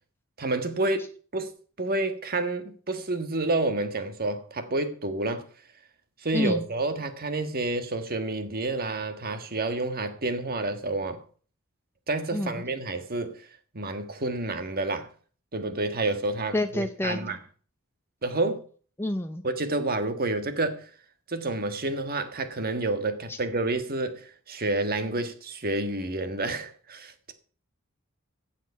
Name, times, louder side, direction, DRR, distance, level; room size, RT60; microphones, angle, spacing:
voice 1, 0.4-1.5 1.8-5.4 6.2-11.2 12.1-13.5 13.7-15.1 15.5-17.4 18.2-18.6 19.4-20.9 21.3-27.3, right 2 dB, 45° right, 1.6 m, -29 dB
voice 2, 6.3-6.6 12.3-12.6 16.5-17.2 19.0-19.4 23.3-23.4, left 1 dB, 10° left, 0.6 m, -28 dB
15.5 x 7.5 x 5.6 m
head